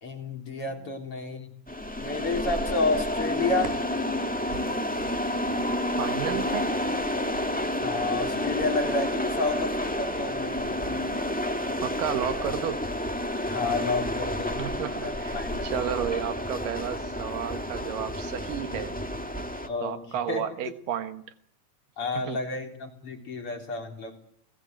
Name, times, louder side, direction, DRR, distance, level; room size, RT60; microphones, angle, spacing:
voice 1, 0.0-1.5 2.0-3.8 7.8-11.0 11.6-11.8 13.5-14.6 15.0-15.7 19.7-20.4 22.0-24.2, left 3 dB, 40° left, 4 dB, 4.2 m, -30 dB
sound 1, 1.7-19.7, left 1 dB, 5° left, 0.6 m, -30 dB
sound 2, 3.2-16.7, right 2 dB, 15° right, 5.5 m, -49 dB
voice 2, 6.0-6.7 11.8-12.9 14.6-18.9 19.8-21.2 22.1-22.4, right 9 dB, 75° right, 10 dB, 2.9 m, -32 dB
29.5 x 19.5 x 9.1 m, 0.69 s
omnidirectional pair, 3.9 m